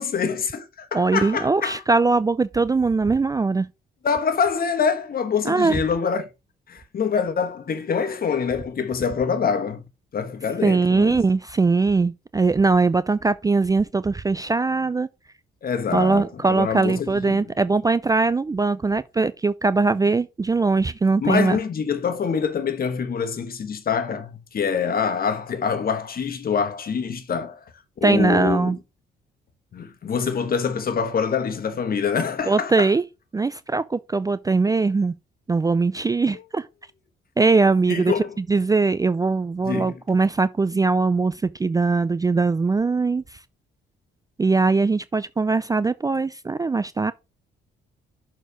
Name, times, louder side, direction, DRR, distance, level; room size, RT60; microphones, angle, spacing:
voice 1, 0.0-1.8 4.0-6.3 6.7-9.8 10.1-11.2 15.6-17.5 21.2-27.6 28.0-28.7 29.7-32.9 37.9-38.3 39.6-40.0, left 6 dB, 50° left, 1.3 m, -25 dB
voice 2, 0.9-3.7 5.4-5.8 10.6-15.1 15.9-21.6 28.0-28.8 32.5-33.0 33.3-35.1 35.5-36.7 37.4-43.2 44.4-47.1, right 3 dB, 20° right, 0.4 m, -21 dB
6.5 x 4.3 x 5.0 m
cardioid pair, 90°, 20 cm